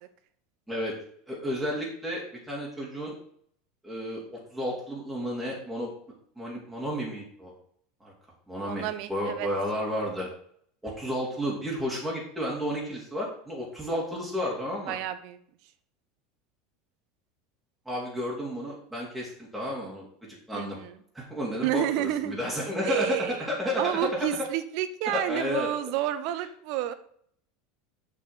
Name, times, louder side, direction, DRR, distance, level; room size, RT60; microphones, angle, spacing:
voice 1, 1.3-3.1 3.8-4.2 4.5-5.9 6.4-7.5 8.0-8.1 8.5-8.8 9.1-10.3 10.8-15.0 17.8-20.0 20.5-20.8 21.1-23.8 25.1-25.7, equal, 5° right, -5 dB, 3.4 m, -32 dB
voice 2, 8.7-9.5 14.9-15.4 20.5-20.9 21.6-22.4 22.8-23.4 23.8-26.9, right 12 dB, 55° right, 12 dB, 0.8 m, -30 dB
7.0 x 5.4 x 6.1 m, 0.63 s
figure-of-eight pair, 80°, 0 cm